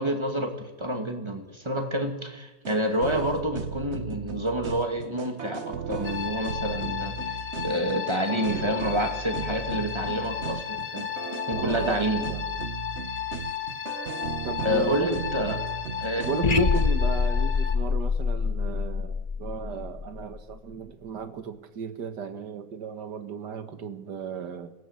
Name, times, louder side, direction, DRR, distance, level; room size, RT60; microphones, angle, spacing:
voice 1, 0.0-11.1 11.4-12.2 14.6-15.5 16.0-16.3, equal, 15° right, 4 dB, 2.6 m, -28 dB
sound 1, 2.6-16.9, right 5 dB, 45° right, 1.3 m, -36 dB
sound 2, 6.0-17.8, left 9 dB, 55° left, 1.8 m, -34 dB
voice 2, 11.6-12.4 14.4-15.2 16.2-24.7, right 6 dB, 80° right, 10 dB, 2.0 m, -34 dB
sound 3, 16.4-20.5, left 5 dB, 30° left, 0.9 m, -25 dB
25.0 x 17.0 x 8.4 m, 1.1 s
omnidirectional pair, 1.8 m